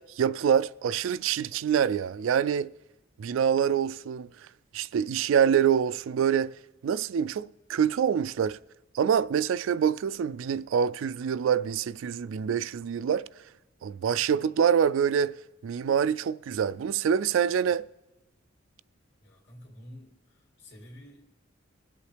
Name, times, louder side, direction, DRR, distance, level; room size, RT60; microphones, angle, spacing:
voice 1, 0.0-2.7 3.2-4.5 4.7-6.6 6.8-8.6 8.9-13.3 13.8-15.4 15.6-17.8, right 8 dB, 75° right, 0.3 m, -26 dB
voice 2, 19.2-21.2, equal, 60° left, 2.6 m, -49 dB
22.0 x 8.3 x 3.4 m
head